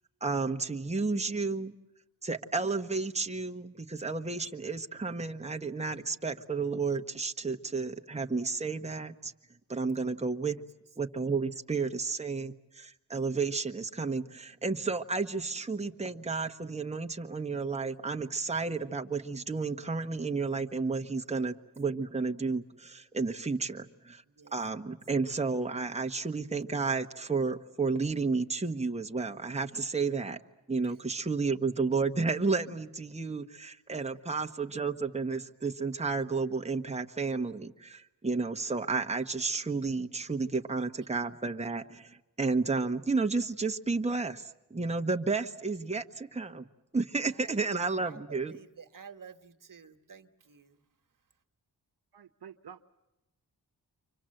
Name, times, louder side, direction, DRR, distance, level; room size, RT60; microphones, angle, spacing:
voice 1, 0.2-1.7 2.2-9.3 9.7-10.6 11.0-24.2 24.5-30.4 30.7-46.7 46.9-48.5, right 4 dB, 15° right, 4 dB, 1.2 m, -32 dB
voice 2, 34.1-34.6 40.6-40.7 45.8-46.0 47.3-50.8, right 6 dB, 50° right, 6 dB, 1.6 m, -53 dB
voice 3, 52.1-52.8, right 8 dB, 70° right, 6 dB, 1.0 m, -49 dB
29.5 x 25.0 x 7.8 m, 0.98 s
cardioid pair, 50°, 40 cm